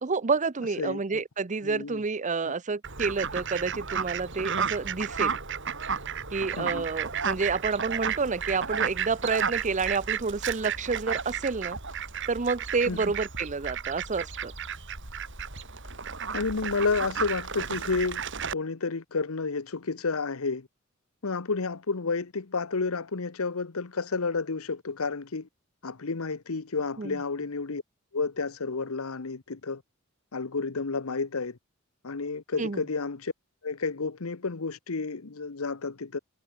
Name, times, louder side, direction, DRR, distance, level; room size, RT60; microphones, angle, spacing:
voice 1, 0.0-5.4 6.3-11.8 12.3-14.5 27.0-27.2 32.6-32.8, right 4 dB, 35° right, 0.7 m, -29 dB
voice 2, 0.8-1.2 1.6-2.0 6.6-6.9 12.9-13.1 16.3-18.2 18.5-20.7 21.2-25.5 25.8-27.8 28.1-29.8 30.3-31.6 32.0-33.3 33.6-36.2, left 4 dB, 85° left, 1.0 m, -31 dB
Fowl, 2.8-18.5, right 7 dB, 60° right, 5.7 m, -33 dB
head